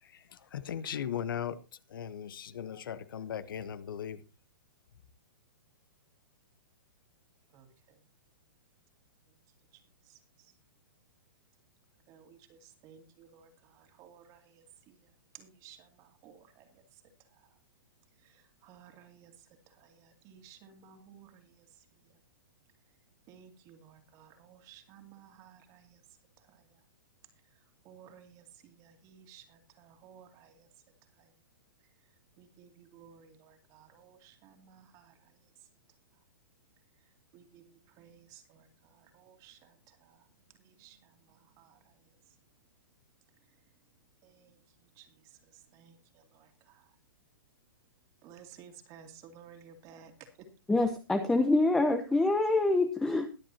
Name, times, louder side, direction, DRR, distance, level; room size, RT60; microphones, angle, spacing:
voice 1, 0.0-1.6 1.9-4.2, left 9 dB, 70° left, 1.1 m, -38 dB
voice 2, 7.5-8.0 9.7-10.5 12.1-17.0 17.3-17.5 18.2-22.1 23.3-26.0 26.4-26.8 27.8-30.7 31.2-31.3 32.4-35.5 37.3-42.2 44.2-46.9 48.2-50.5, right 8 dB, 30° right, 2.5 m, -57 dB
voice 3, 50.7-53.3, left 2 dB, 5° left, 0.8 m, -26 dB
22.0 x 7.7 x 2.8 m
hypercardioid pair, 150°, 12 cm